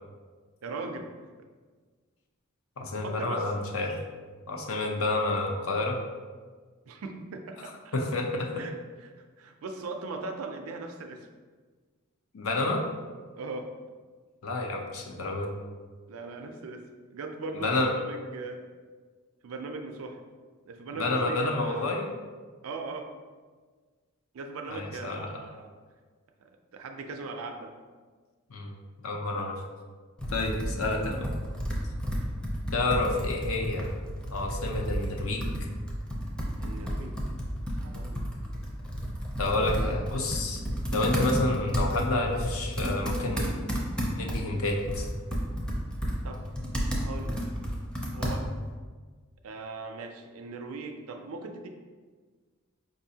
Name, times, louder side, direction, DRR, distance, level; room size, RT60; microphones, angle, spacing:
voice 1, 0.6-1.1 3.0-3.5 6.9-8.0 8.5-11.3 13.3-13.7 16.1-18.6 19.4-20.2 20.7-22.0 22.6-23.1 24.3-25.7 26.4-27.8 36.6-37.2 37.8-38.3 39.7-39.9 46.2-46.5 47.0-47.4 48.1-48.5 49.4-51.7, right 3 dB, 85° right, 5 dB, 0.4 m, -39 dB
voice 2, 2.8-4.0 4.5-6.0 7.9-8.5 12.3-12.8 14.4-15.5 17.6-17.9 20.9-22.1 24.7-25.3 28.5-28.7 29.0-29.5 30.3-31.3 32.7-33.9 34.3-35.5 39.4-40.6 40.9-43.6 44.1-45.1, left 2 dB, 75° left, 1 dB, 0.6 m, -29 dB
Computer keyboard, 30.2-48.7, equal, 5° left, 0.5 m, -32 dB
4.8 x 2.6 x 2.7 m, 1.5 s
head